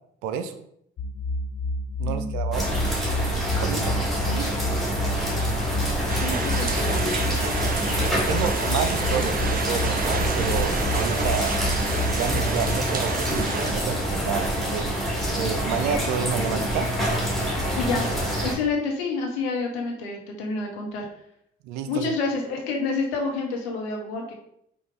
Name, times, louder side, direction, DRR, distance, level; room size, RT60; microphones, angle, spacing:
voice 1, 0.2-0.6 2.0-2.9 3.6-4.0 4.2-4.6 8.1-11.6 12.1-14.9 15.3-16.9 21.6-22.1, right 7 dB, 70° right, 9 dB, 0.5 m, -30 dB
sound 1, 1.0-12.8, left 1 dB, 35° left, 0.4 m, -29 dB
voice 2, 2.0-2.4 6.2-7.1 17.7-18.1 18.4-21.1 21.9-24.3, left 4 dB, 80° left, 2 dB, 0.9 m, -28 dB
sound 2, 2.5-18.5, equal, ahead, 1.7 m, -26 dB
sound 3, 6.1-13.7, right 4 dB, 30° right, 0.6 m, -31 dB
5.0 x 2.3 x 3.4 m, 0.71 s
figure-of-eight pair, 45°, 31 cm